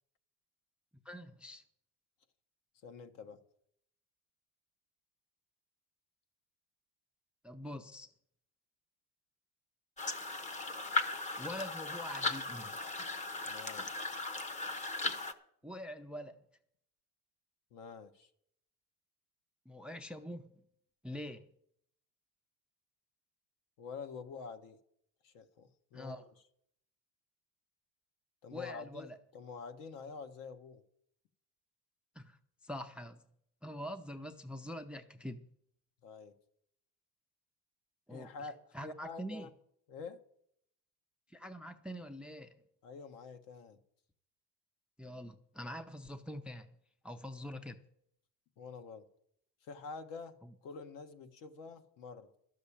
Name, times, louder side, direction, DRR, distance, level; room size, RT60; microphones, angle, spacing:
voice 1, 1.1-1.6 7.4-8.1 11.4-12.8 15.6-16.4 19.7-20.5 21.0-21.5 25.9-26.2 28.5-29.2 32.2-32.4 32.6-33.2 33.6-35.5 38.1-38.5 38.7-39.5 41.3-42.5 45.0-46.7 47.0-47.8 50.4-50.5, equal, 5° right, 0.4 m, -44 dB
voice 2, 2.8-3.4 13.5-14.1 17.7-18.3 23.8-24.8 25.2-26.3 28.4-30.8 36.0-36.3 38.1-38.6 38.8-39.5 39.9-40.2 42.8-43.8 48.6-49.0 49.6-50.4 50.6-52.3, left 5 dB, 65° left, 1.3 m, -47 dB
sound 1, 10.0-15.3, left 3 dB, 20° left, 0.8 m, -37 dB
12.5 x 6.5 x 8.5 m
cardioid pair, 145°, 36 cm